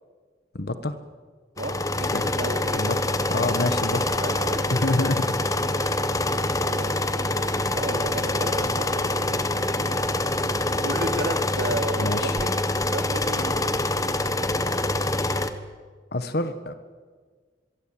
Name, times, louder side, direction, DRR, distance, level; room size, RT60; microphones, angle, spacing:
voice 1, 0.5-0.9 2.1-2.2 2.7-2.9 3.3-4.2 4.7-5.3 5.8-6.0 12.0-12.4 16.1-16.7, left 2 dB, 60° left, 10 dB, 1.5 m, -27 dB
sound 1, 1.6-15.5, left 2 dB, 20° left, 1.2 m, -25 dB
voice 2, 1.6-3.0 4.2-4.7 5.0-5.1 6.7-9.4 10.8-12.6 12.9-13.7, right 1 dB, 60° right, 5 dB, 3.4 m, -34 dB
25.0 x 22.5 x 8.9 m, 1.5 s
head